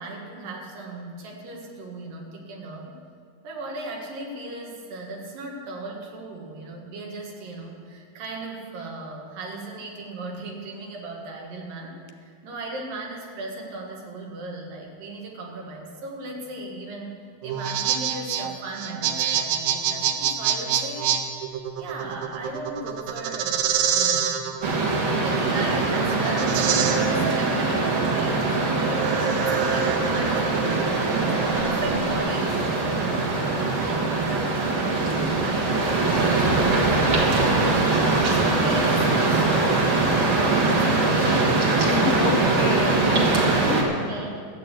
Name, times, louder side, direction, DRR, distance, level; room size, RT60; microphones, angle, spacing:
voice 1, 0.0-3.0 3.4-21.1 21.8-37.8 38.3-42.2 43.9-44.4, right 2 dB, 75° right, -1 dB, 3.3 m, -37 dB
sound 1, 17.4-32.2, right 8 dB, 90° right, 2.6 m, -27 dB
sound 2, 24.6-43.8, right 3 dB, 45° right, 1.7 m, -22 dB
voice 2, 41.9-44.1, left 7 dB, 80° left, 6 dB, 1.9 m, -30 dB
13.5 x 7.8 x 8.3 m, 2.2 s
omnidirectional pair, 4.1 m